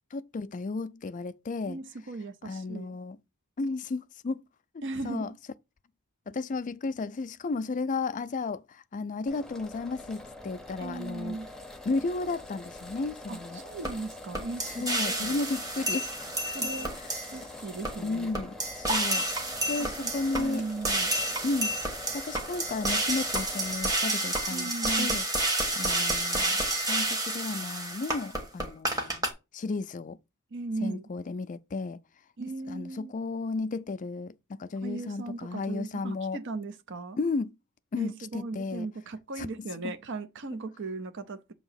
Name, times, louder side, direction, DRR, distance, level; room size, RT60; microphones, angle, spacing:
voice 1, 0.1-1.8 2.4-3.2 3.6-4.4 5.0-5.3 6.3-11.4 11.9-13.6 14.8-16.7 17.0-17.1 18.0-19.2 19.7-20.6 21.4-24.7 25.0-25.3 25.7-29.2 29.5-30.2 30.8-32.0 32.7-36.4 37.2-37.5 37.9-38.9 39.4-39.5 39.8-39.9, left 3 dB, 35° left, 0.4 m, -33 dB
voice 2, 1.6-3.0 4.8-5.4 10.8-11.5 13.3-15.4 16.5-17.0 17.3-18.3 19.8-21.1 24.5-25.2 30.5-31.1 32.4-33.1 34.8-37.2 38.0-41.5, right 3 dB, 55° right, 0.6 m, -37 dB
sound 1, 9.3-23.9, left 2 dB, 5° left, 0.7 m, -45 dB
sound 2, 13.8-13.9 14.3-17.4 17.8-17.9 18.3-29.3, right 1 dB, 15° right, 1.2 m, -30 dB
7.0 x 2.9 x 5.6 m
head